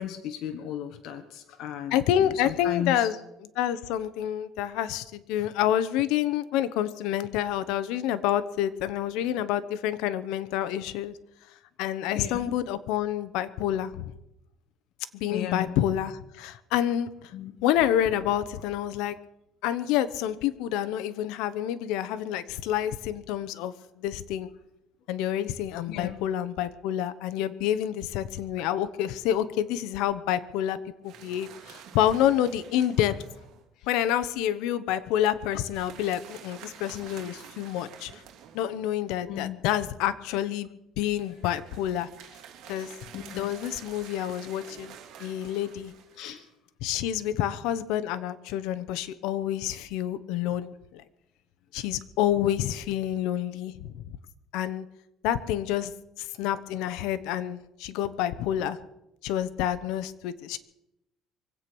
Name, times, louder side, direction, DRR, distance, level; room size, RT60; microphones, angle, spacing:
voice 1, 0.0-3.1 12.1-12.5 15.3-15.7 17.3-17.5 25.9-26.1 39.3-39.6 43.1-43.5 45.4-45.5 46.2-46.4, left 10 dB, 65° left, 6 dB, 1.4 m, -35 dB
voice 2, 1.9-3.2 3.6-11.1 11.8-14.1 15.1-17.3 17.6-19.2 19.6-24.5 25.1-30.8 31.0-33.2 33.9-38.2 38.5-42.1 42.7-42.9 43.4-45.9 46.8-51.0 51.7-54.2 54.5-54.8 55.2-55.9 56.2-58.8 59.2-60.6, left 11 dB, 85° left, 13 dB, 1.0 m, -28 dB
sound 1, 31.0-33.6 35.7-38.9 41.1-46.5, right 9 dB, 70° right, 2.9 m, -49 dB
24.0 x 8.6 x 6.2 m, 0.86 s
cardioid pair, 130°, 0 cm